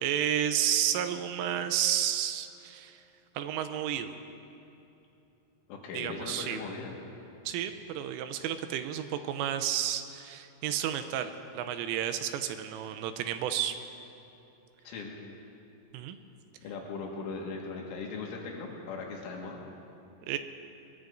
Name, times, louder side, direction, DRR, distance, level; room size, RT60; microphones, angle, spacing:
voice 1, 0.0-3.0 3.4-4.2 5.9-6.6 7.5-13.8 15.9-16.2 20.3-20.4, right 10 dB, 80° right, 8 dB, 3.1 m, -31 dB
voice 2, 5.7-7.0 14.9-15.2 16.6-19.6, left 4 dB, 75° left, -1 dB, 4.1 m, -39 dB
23.0 x 21.5 x 2.6 m, 2.9 s
omnidirectional pair, 5.9 m